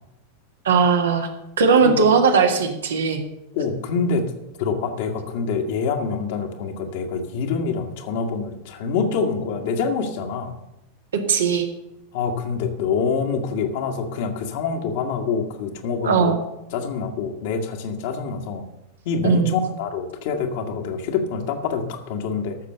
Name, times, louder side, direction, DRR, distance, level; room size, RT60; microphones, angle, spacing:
voice 1, 0.7-1.3 1.6-3.2 11.3-11.7 16.0-16.4 19.2-19.5, right 5 dB, 65° right, 4 dB, 1.7 m, -18 dB
voice 2, 3.5-4.3 4.6-10.5 12.1-16.4 16.7-18.7 19.1-22.6, left 5 dB, 50° left, 4 dB, 1.8 m, -26 dB
14.0 x 6.7 x 6.6 m, 0.92 s
figure-of-eight pair, 90°, 0 cm